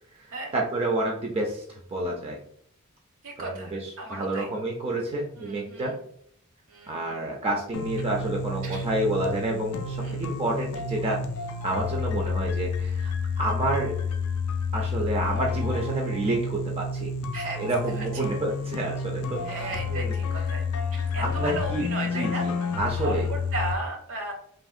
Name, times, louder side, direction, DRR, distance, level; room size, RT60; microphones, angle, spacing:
voice 1, 0.5-2.4 3.4-5.9 6.9-11.2 11.6-14.0 14.7-17.1 17.6-20.1 21.1-21.9 22.1-23.3, right 1 dB, 25° right, 0 dB, 0.3 m, -29 dB
voice 2, 3.2-4.5 5.4-6.0 6.7-7.0 8.6-8.9 10.0-10.2 17.3-17.7 18.0-18.1 19.4-20.6 20.9-22.5 23.0-24.3, right 2 dB, 65° right, 2 dB, 0.7 m, -35 dB
sound 1, 7.7-23.7, left 4 dB, 75° left, 0.3 m, -30 dB
3.5 x 2.0 x 2.4 m, 0.65 s
head